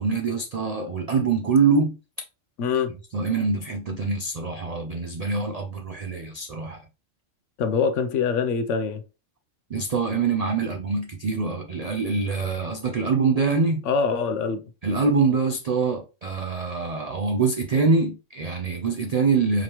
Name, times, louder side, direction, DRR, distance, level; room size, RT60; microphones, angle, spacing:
voice 1, 0.0-2.0 3.1-6.8 9.7-13.9 14.8-19.6, right 4 dB, 75° right, 0.3 m, -24 dB
voice 2, 2.6-2.9 7.6-9.0 13.9-14.7, left 5 dB, 75° left, 1.0 m, -24 dB
5.0 x 2.9 x 3.0 m
omnidirectional pair, 1.3 m